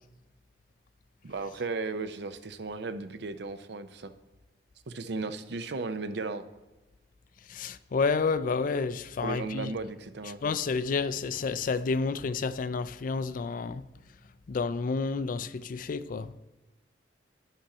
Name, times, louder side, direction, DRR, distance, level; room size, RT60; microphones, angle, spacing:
voice 1, 1.2-4.1 4.9-6.4 9.2-10.4, right 3 dB, 65° right, 0.6 m, -35 dB
voice 2, 7.4-9.7 10.3-13.9 14.5-16.3, left 4 dB, 50° left, 0.4 m, -30 dB
9.8 x 6.1 x 4.2 m
head